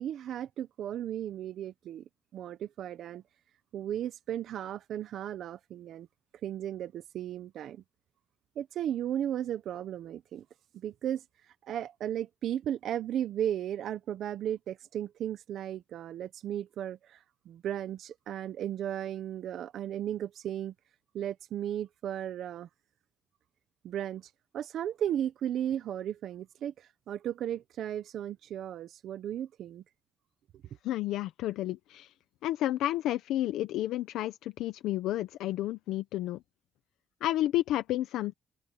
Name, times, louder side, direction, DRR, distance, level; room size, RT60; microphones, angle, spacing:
voice 1, 0.0-2.0 2.3-3.2 3.7-6.1 6.4-7.8 8.6-10.4 10.7-11.2 11.6-20.7 21.1-22.7 23.8-29.8, right 10 dB, 75° right, 1.0 m, -35 dB
voice 2, 30.8-32.1 32.4-36.4 37.2-38.3, left 14 dB, 90° left, 0.8 m, -31 dB
cardioid pair, 90°, 0 cm